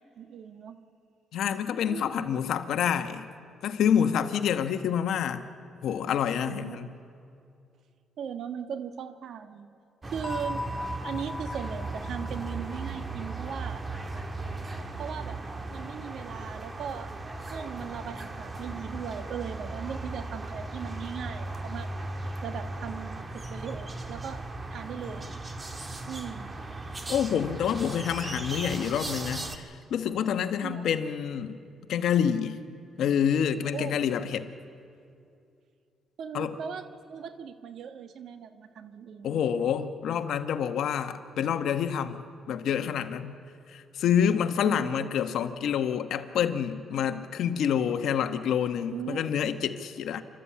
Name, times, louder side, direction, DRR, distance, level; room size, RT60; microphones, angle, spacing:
voice 1, 0.2-0.8 1.9-2.3 6.5-6.9 8.2-9.7 10.1-10.7 11.0-13.8 15.0-15.4 15.7-17.1 17.5-21.9 22.4-24.4 24.7-25.3 26.1-26.5 30.6-30.8 33.7-34.0 36.2-39.4 44.6-45.1 48.9-49.3, right 7 dB, 70° right, 9 dB, 1.4 m, -38 dB
voice 2, 1.3-3.3 3.6-5.5 5.8-6.9 27.1-31.6 31.9-32.6 33.0-34.5 36.3-36.6 39.2-42.2 42.5-43.4 43.7-50.2, left 8 dB, 75° left, 9 dB, 1.1 m, -27 dB
sound 1, 10.0-29.6, right 2 dB, 25° right, 1.7 m, -37 dB
sound 2, 10.2-14.9, left 1 dB, 15° left, 1.1 m, -40 dB
28.5 x 13.0 x 8.6 m, 2.5 s
cardioid pair, 90°, 0 cm